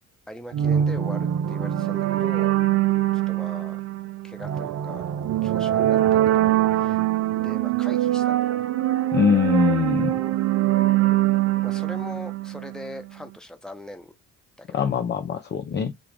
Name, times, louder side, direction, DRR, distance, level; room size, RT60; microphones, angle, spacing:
voice 1, 0.3-2.6 3.1-3.8 4.2-5.1 5.4-7.0 7.4-8.7 11.6-14.1 14.6-14.9, left 1 dB, ahead, 0.9 m, -40 dB
sound 1, 0.5-13.0, right 13 dB, 40° right, 0.4 m, -23 dB
voice 2, 9.1-10.2 14.7-15.9, left 6 dB, 30° left, 0.5 m, -22 dB
3.4 x 2.3 x 3.3 m
hypercardioid pair, 45°, 41 cm